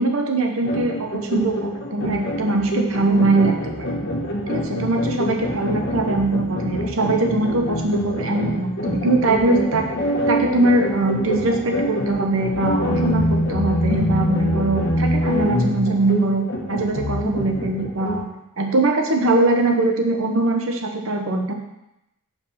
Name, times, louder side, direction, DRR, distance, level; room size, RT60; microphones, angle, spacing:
voice 1, 0.0-4.0 4.5-9.9 10.3-18.2 18.6-21.5, right 2 dB, 75° right, 3 dB, 1.0 m, -21 dB
sound 1, 0.6-18.2, equal, 55° left, 1.2 m, -25 dB
5.3 x 4.9 x 5.7 m, 0.88 s
head